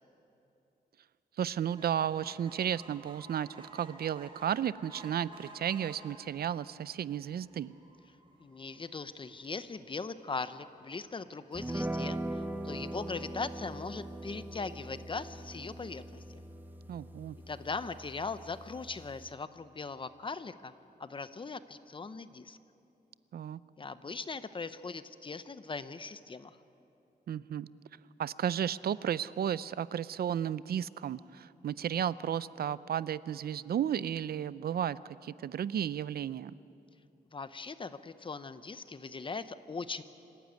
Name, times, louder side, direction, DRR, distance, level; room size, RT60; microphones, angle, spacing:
voice 1, 1.4-7.8 16.9-17.4 23.3-23.6 27.3-27.7 28.2-36.5, right 9 dB, 70° right, 17 dB, 0.5 m, -33 dB
sound 1, 1.7-14.3 14.9-15.0 15.3-15.4 15.6-15.7, right 2 dB, 30° right, 3.6 m, -56 dB
voice 2, 8.4-16.4 17.5-20.7 21.0-22.6 23.8-26.6 37.3-40.0, left 4 dB, 30° left, 12 dB, 0.8 m, -40 dB
sound 2, 11.5-19.3, right 1 dB, 10° right, 1.0 m, -41 dB
26.0 x 15.0 x 9.3 m, 2.8 s
wide cardioid pair, 130°, 16 cm